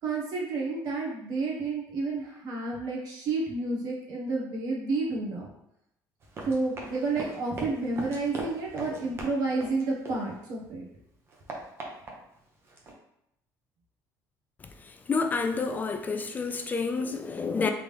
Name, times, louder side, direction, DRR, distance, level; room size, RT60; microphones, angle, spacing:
voice 1, 0.0-5.5 6.4-10.9, right 3 dB, 70° right, -3 dB, 1.3 m, -30 dB
Run, 6.2-10.7 11.0-12.9, right 2 dB, 35° right, 0.9 m, -41 dB
voice 2, 15.1-17.7, left 4 dB, 25° left, 6 dB, 0.3 m, -29 dB
3.8 x 3.4 x 3.4 m, 0.79 s
cardioid pair, 140°, 7 cm